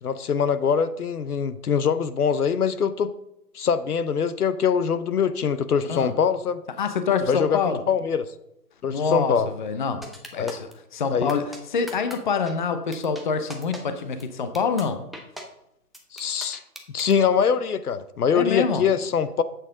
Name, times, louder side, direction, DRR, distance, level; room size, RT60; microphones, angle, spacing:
voice 1, 0.0-3.1 3.5-6.6 7.3-8.2 8.8-9.5 10.4-10.6 11.1-11.4 16.1-16.6 16.9-19.4, left 7 dB, 70° left, 14 dB, 0.8 m, -23 dB
voice 2, 6.8-7.8 8.9-15.0 18.3-18.9, left 5 dB, 30° left, 9 dB, 0.7 m, -26 dB
sound 1, 10.0-10.7 11.3-11.6 11.9-12.2 12.5-12.6 12.9-13.2 13.5-13.8 14.2-14.3 14.5-14.8 15.1-15.4 15.9-17.1, equal, ahead, 0.3 m, -39 dB
9.7 x 8.1 x 3.8 m, 0.82 s
hypercardioid pair, 155°, 47 cm